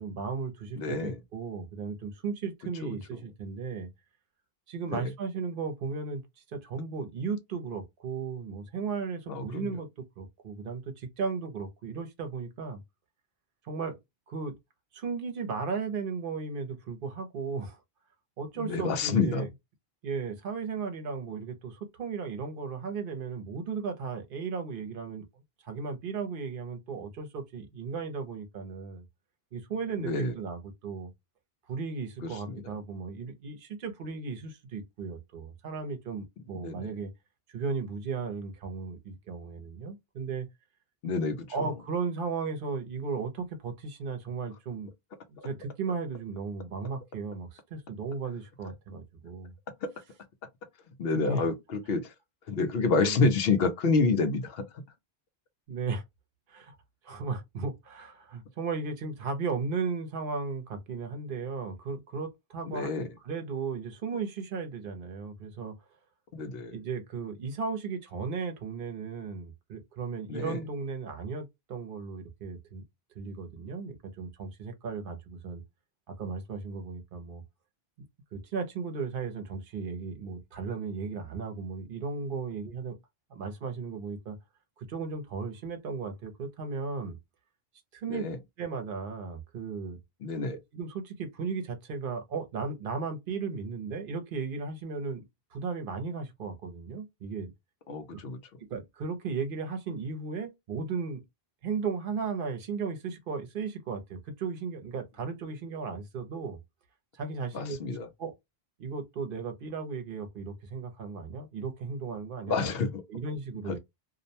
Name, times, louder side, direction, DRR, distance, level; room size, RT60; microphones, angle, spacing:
voice 1, 0.0-3.9 4.7-6.2 6.5-12.8 13.6-14.0 14.3-14.6 14.9-17.8 18.4-19.5 20.0-25.3 25.6-29.0 29.5-31.1 31.7-37.1 37.5-40.5 41.5-44.9 45.3-49.5 51.1-51.5 53.0-53.3 55.7-56.0 56.5-56.7 57.0-62.9 63.2-65.8 66.7-72.8 73.2-75.6 76.1-77.4 78.3-83.0 83.3-84.4 84.8-87.2 87.9-88.3 88.6-90.0 90.7-95.2 95.5-97.5 98.1-98.2 98.7-101.2 101.6-106.6 107.1-107.8 108.2-108.3 108.8-112.7 113.1-113.8, right 5 dB, 60° right, 0.8 m, -35 dB
voice 2, 0.8-1.2 2.8-2.9 4.9-5.0 9.3-9.7 18.6-19.4 30.0-30.3 32.2-32.6 36.6-36.9 41.0-41.7 49.8-49.9 51.0-51.5 51.9-52.1 52.5-54.6 62.7-63.1 66.3-66.7 70.3-70.6 88.1-88.4 90.2-90.5 97.9-98.4 107.5-108.1 112.5-113.0, left 4 dB, 75° left, 0.8 m, -28 dB
2.5 x 2.1 x 2.7 m
omnidirectional pair, 1.0 m